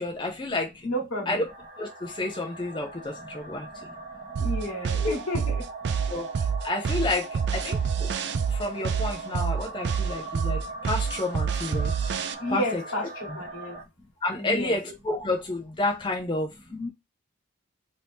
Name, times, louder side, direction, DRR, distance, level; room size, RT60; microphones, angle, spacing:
voice 1, 0.0-0.9 1.3-1.4 1.8-3.9 5.0-5.1 6.1-8.1 8.5-11.9 12.5-12.8 14.2-16.5, left 2 dB, 25° left, 0.4 m, -30 dB
voice 2, 0.8-1.4 4.4-5.6 12.4-13.0 13.3-13.8 14.4-14.7 16.7-16.9, equal, 90° left, 1.2 m, -31 dB
sound 1, 1.4-13.8, right 3 dB, 40° right, 0.7 m, -40 dB
sound 2, 4.3-12.3, right 6 dB, 55° right, 0.3 m, -27 dB
2.8 x 2.7 x 3.4 m
head